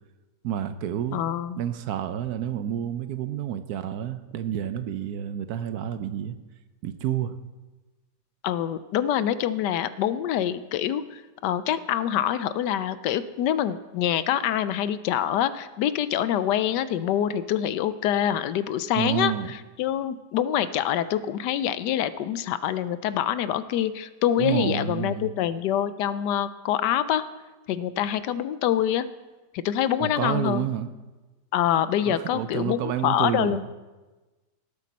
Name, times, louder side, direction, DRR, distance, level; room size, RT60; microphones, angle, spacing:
voice 1, 0.4-1.2 1.6-6.4 6.8-7.4 18.9-19.5 24.4-25.3 30.0-30.9 32.1-33.6, right 10 dB, 70° right, 11 dB, 1.0 m, -29 dB
voice 2, 1.1-1.6 8.4-19.3 19.8-27.3 27.7-29.1 29.5-30.7 31.5-33.6, left 10 dB, 80° left, 14 dB, 1.2 m, -25 dB
18.0 x 8.4 x 4.1 m, 1.2 s
omnidirectional pair, 1.9 m